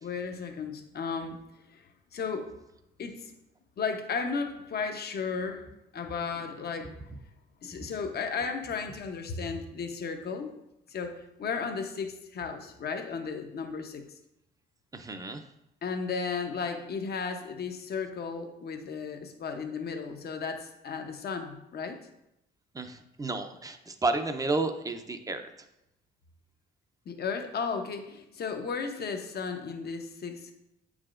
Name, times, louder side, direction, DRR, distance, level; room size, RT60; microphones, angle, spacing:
voice 1, 0.0-1.4 1.7-2.5 3.0-3.3 3.8-5.7 5.9-7.0 7.6-10.5 10.9-14.0 15.8-22.1 27.1-30.5, left 5 dB, 55° left, 5 dB, 0.8 m, -34 dB
voice 2, 14.9-15.4 22.7-25.5, right 3 dB, 15° right, 7 dB, 0.6 m, -32 dB
8.2 x 4.9 x 2.5 m, 0.85 s
cardioid pair, 90°, 20 cm